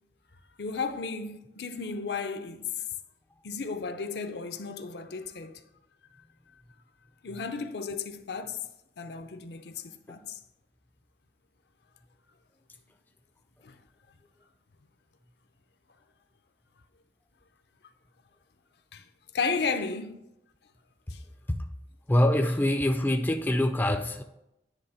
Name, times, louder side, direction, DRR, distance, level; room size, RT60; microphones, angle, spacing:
voice 1, 0.6-2.7 3.4-5.6 7.2-8.6 9.0-10.4 13.6-13.7 18.9-19.0 19.3-20.2 21.1-21.2, left 4 dB, 70° left, 0.6 m, -34 dB
voice 2, 22.1-24.2, left 1 dB, 10° left, 0.4 m, -25 dB
10.0 x 3.4 x 5.6 m
head